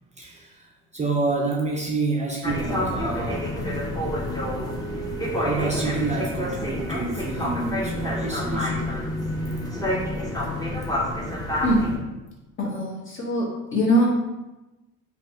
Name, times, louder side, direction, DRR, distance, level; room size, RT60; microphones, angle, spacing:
voice 1, 0.2-3.5 5.3-9.4, right 3 dB, 20° right, -1 dB, 0.5 m, -28 dB
sound 1, 2.4-12.0, left 1 dB, 10° left, 0.8 m, -28 dB
voice 2, 12.6-13.5 13.7-14.1, equal, 40° left, -4 dB, 1.3 m, -22 dB
3.2 x 2.3 x 4.0 m, 1.0 s
supercardioid pair, 80°, 32 cm